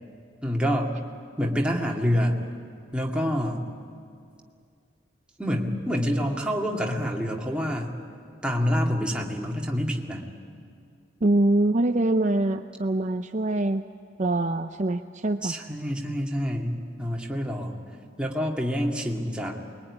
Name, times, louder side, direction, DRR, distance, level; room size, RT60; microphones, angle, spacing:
voice 1, 0.4-0.9 1.4-2.4 2.9-3.7 5.4-8.0 8.4-10.2 15.4-17.8 18.2-19.6, equal, 5° right, -1 dB, 2.3 m, -27 dB
voice 2, 11.2-13.8 14.2-15.5, right 2 dB, 40° right, 7 dB, 0.6 m, -24 dB
25.0 x 22.0 x 9.9 m, 2.4 s
head